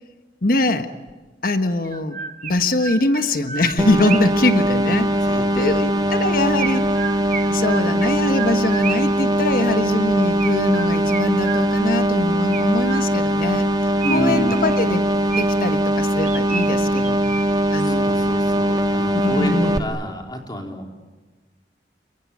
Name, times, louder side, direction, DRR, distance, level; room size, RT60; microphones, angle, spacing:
voice 1, 0.4-0.9 1.4-7.0 7.5-13.7 14.1-15.0 15.3-17.2 17.7-18.1 19.2-19.9, left 2 dB, 55° left, 8 dB, 1.4 m, -22 dB
Chirp tweet, 1.1-1.2 1.9-4.5 6.6-9.2 10.4-12.0 12.5-13.4 14.0-15.8 16.2-17.7, right 7 dB, 45° right, 1.1 m, -32 dB
sound 1, 3.8-19.8, right 1 dB, 20° right, 1.1 m, -21 dB
voice 2, 5.2-6.3 14.0-14.7 17.8-21.0, equal, 25° left, 2 dB, 3.9 m, -29 dB
29.0 x 23.5 x 8.6 m, 1.2 s
head